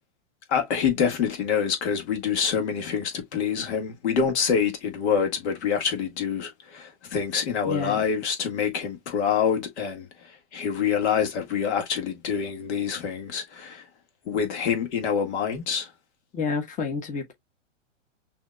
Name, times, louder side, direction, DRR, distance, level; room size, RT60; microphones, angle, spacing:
voice 1, 0.5-10.1 10.5-13.9 14.3-15.9, left 7 dB, 60° left, 1.8 m, -26 dB
voice 2, 7.6-8.0 16.3-17.3, left 5 dB, 20° left, 1.3 m, -29 dB
6.1 x 3.0 x 2.3 m
hypercardioid pair, 120°, 38 cm